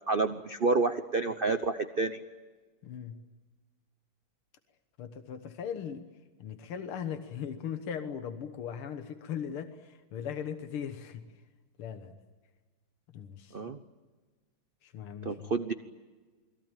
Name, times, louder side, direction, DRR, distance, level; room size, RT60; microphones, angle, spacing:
voice 1, 0.1-2.2 13.5-13.8 15.2-15.7, right 3 dB, 60° right, 9 dB, 0.5 m, -29 dB
voice 2, 2.8-3.2 5.0-6.0 6.4-11.2 11.8-12.2 13.1-13.6 14.8-15.5, left 8 dB, 85° left, 8 dB, 2.2 m, -39 dB
29.5 x 21.5 x 9.0 m, 1.4 s
omnidirectional pair, 2.3 m